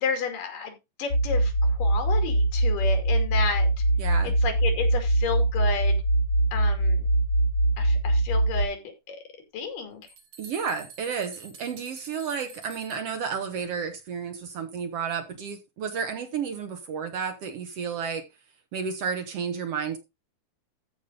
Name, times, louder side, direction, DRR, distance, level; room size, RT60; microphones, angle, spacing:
voice 1, 0.0-1.5 1.8-3.7 4.4-6.0 6.5-7.1 7.8-8.8 9.1-9.2 9.5-10.0, left 5 dB, 85° left, 4.1 m, -31 dB
sound 1, 1.1-8.7, right 1 dB, 50° left, 1.4 m, -23 dB
voice 2, 4.0-4.4 10.4-18.2 18.7-20.0, right 6 dB, 60° right, 1.9 m, -32 dB
sound 2, 9.6-9.7 10.0-13.2, right 5 dB, 80° right, 4.1 m, -48 dB
14.0 x 5.3 x 3.7 m
omnidirectional pair, 3.7 m